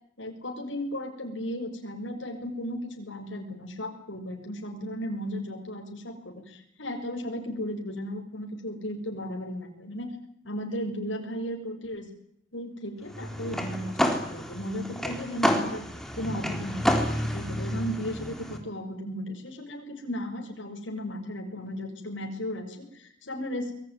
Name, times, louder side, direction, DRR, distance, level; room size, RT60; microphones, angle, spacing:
voice 1, 0.2-10.1 10.4-12.1 12.5-15.8 16.2-23.8, equal, 80° left, 3 dB, 6.5 m, -35 dB
sound 1, 13.1-18.6, equal, ahead, 3.8 m, -29 dB
25.5 x 22.0 x 9.7 m, 0.69 s
head